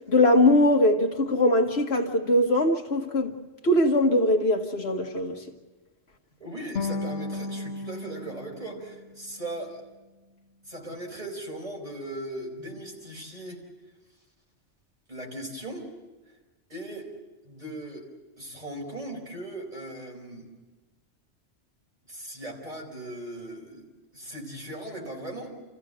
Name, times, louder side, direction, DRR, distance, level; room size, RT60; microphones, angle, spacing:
voice 1, 0.1-3.3 3.6-5.4, left 1 dB, 65° left, 1.6 m, -21 dB
voice 2, 6.4-9.8 10.6-13.6 15.1-15.9 16.7-17.1 17.4-18.1 18.4-20.5 22.1-23.9 24.1-25.5, right 1 dB, 35° right, 4.6 m, -38 dB
sound 1, 6.8-9.9, left 3 dB, 85° left, 1.6 m, -35 dB
28.0 x 15.0 x 7.9 m
omnidirectional pair, 1.2 m